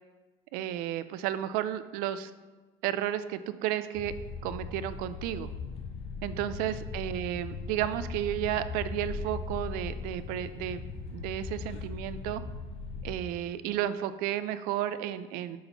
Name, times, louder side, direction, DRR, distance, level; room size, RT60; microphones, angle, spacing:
voice 1, 0.5-2.3 2.8-4.1 4.4-5.5 6.2-10.8 11.1-12.4 13.0-15.6, right 12 dB, 75° right, 13 dB, 0.4 m, -32 dB
sound 1, 3.9-13.1, left 4 dB, 45° left, 0.8 m, -39 dB
8.4 x 2.9 x 5.3 m, 1.3 s
cardioid pair, 155°, 15 cm